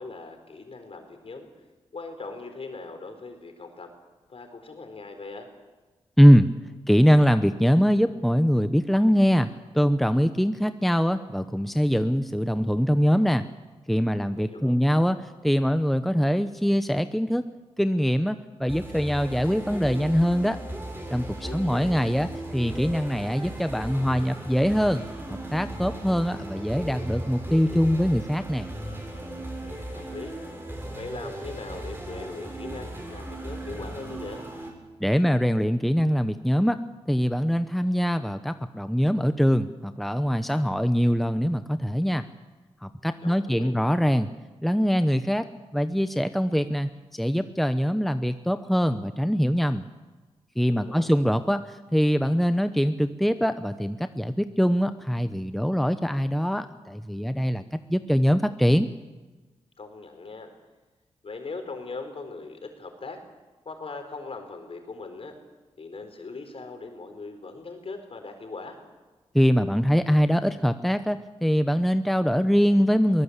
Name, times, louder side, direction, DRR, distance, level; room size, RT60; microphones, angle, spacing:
voice 1, 0.0-1.5 1.9-3.9 4.3-5.5 14.3-14.8 21.4-21.9 29.6-30.4 30.9-34.4 43.2-43.8 50.7-51.1 59.8-60.5 61.2-63.2 63.6-65.3 65.8-68.8, left 3 dB, 55° left, 6 dB, 4.7 m, -40 dB
voice 2, 6.2-6.5 6.9-13.4 13.9-17.5 17.8-20.6 21.1-25.0 25.5-28.7 35.0-36.8 37.1-42.2 42.8-44.3 44.6-45.4 45.7-49.8 50.6-57.6 57.9-58.9 69.3-73.2, equal, ahead, 10 dB, 0.9 m, -23 dB
sound 1, 18.7-34.7, right 1 dB, 20° right, 7.4 m, -37 dB
23.0 x 18.0 x 8.3 m, 1.2 s
cardioid pair, 65°, 12 cm